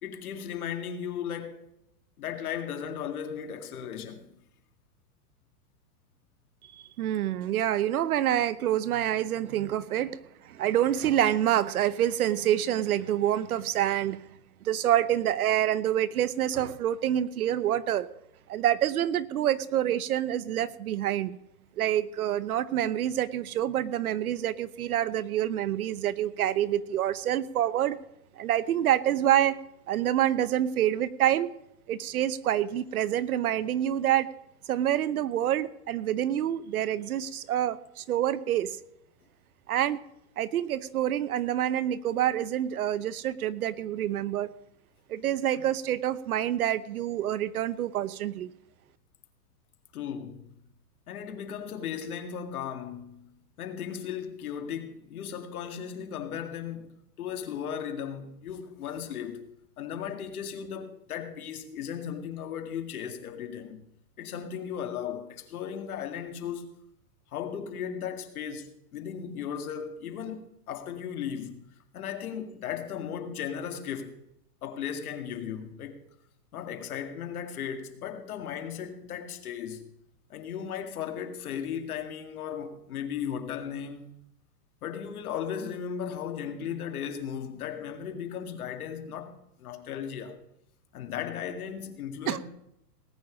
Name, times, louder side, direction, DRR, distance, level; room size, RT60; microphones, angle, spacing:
voice 1, 0.0-1.7 2.2-4.3 45.5-45.7 49.9-50.5 51.1-53.3 53.6-59.5 59.8-63.8 64.2-66.7 67.3-71.6 71.9-74.2 74.6-76.0 76.5-79.9 80.3-84.1 84.8-90.4 90.9-92.4, left 8 dB, 60° left, 2.2 m, -36 dB
voice 2, 6.7-14.2 14.6-18.1 18.5-21.4 21.8-28.0 28.4-29.6 29.9-31.5 31.9-34.3 34.7-38.8 39.7-40.0 40.4-44.5 45.1-48.5 92.3-92.4, right 11 dB, 60° right, 0.9 m, -27 dB
19.0 x 9.0 x 5.1 m
supercardioid pair, 170°, 49 cm